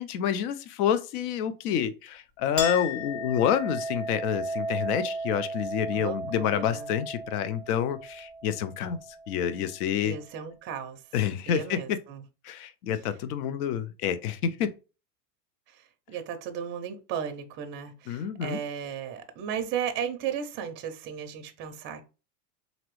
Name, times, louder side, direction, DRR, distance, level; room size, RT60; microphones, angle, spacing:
voice 1, 0.0-9.0 9.3-10.2 11.1-12.0 12.4-14.7 18.1-18.6, left 9 dB, 70° left, 0.7 m, -28 dB
Chink clink, 2.6-9.6, equal, 35° left, 1.4 m, -35 dB
voice 2, 5.9-6.9 10.0-11.0 11.5-12.2 15.7-22.1, right 8 dB, 25° right, 0.4 m, -35 dB
3.9 x 2.9 x 3.0 m
supercardioid pair, 130°, 48 cm